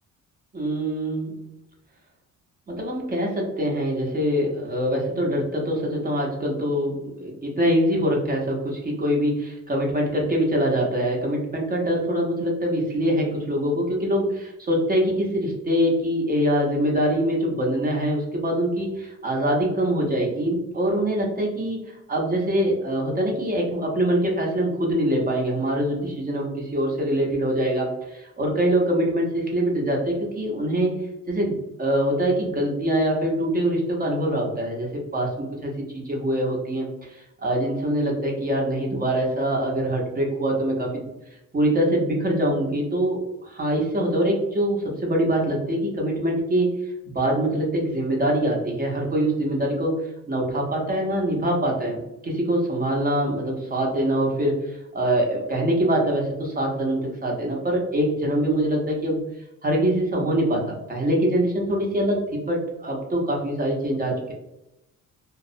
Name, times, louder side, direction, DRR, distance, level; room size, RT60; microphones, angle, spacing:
voice 1, 0.5-1.4 2.7-30.9 31.3-40.9 41.5-46.7 47.1-54.6 54.9-59.2 59.6-64.3, right 1 dB, 25° right, -1 dB, 0.7 m, -24 dB
2.3 x 2.1 x 2.6 m, 0.91 s
cardioid pair, 105°, 32 cm